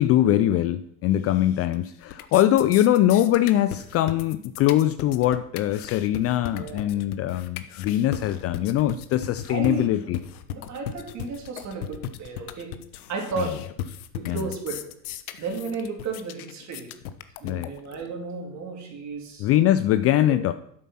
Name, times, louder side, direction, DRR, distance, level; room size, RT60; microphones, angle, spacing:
voice 1, 0.0-10.2 13.4-13.5 14.3-14.5 17.4-17.7 19.4-20.5, left 12 dB, 35° left, 13 dB, 0.4 m, -22 dB
sound 1, 1.3-1.8 2.0-18.0, left 11 dB, 75° left, 0.9 m, -37 dB
voice 2, 6.5-7.0 9.5-10.1 10.5-12.8 13.1-13.6 14.1-14.8 15.4-16.9 17.4-19.5 20.3-20.4, right 4 dB, 40° right, 1 dB, 3.2 m, -33 dB
8.3 x 7.5 x 5.8 m, 0.70 s
hypercardioid pair, 90°, 44 cm